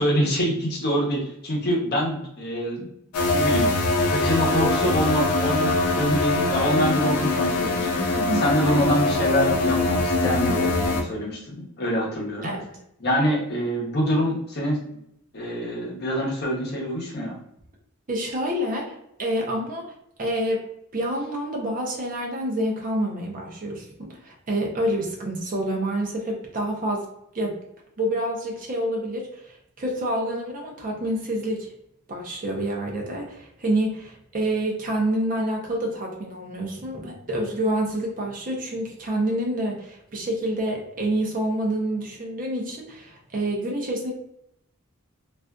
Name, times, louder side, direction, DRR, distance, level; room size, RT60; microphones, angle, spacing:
voice 1, 0.0-2.9 3.3-12.5 13.0-14.8 15.3-17.4, equal, 45° left, -3 dB, 0.8 m, -25 dB
sound 1, 3.1-11.0, left 2 dB, 85° left, 0.5 m, -23 dB
voice 2, 18.1-19.8 20.2-20.6 20.9-27.1 27.3-27.6 28.0-31.7 32.1-44.1, right 1 dB, 40° right, 0 dB, 0.6 m, -27 dB
2.4 x 2.4 x 2.2 m, 0.77 s
head